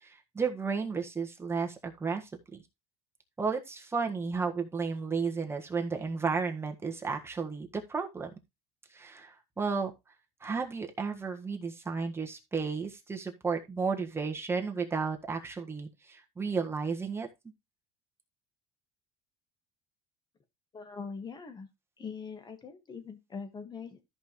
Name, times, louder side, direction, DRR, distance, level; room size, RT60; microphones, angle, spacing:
voice 1, 0.0-2.6 3.4-8.3 8.9-9.9 10.4-17.3, right 5 dB, 15° right, 3 dB, 1.5 m, -33 dB
voice 2, 20.7-21.7 22.0-24.0, left 5 dB, 25° left, 8 dB, 1.7 m, -42 dB
13.5 x 5.3 x 3.1 m, 0.23 s
cardioid pair, 120°, 16 cm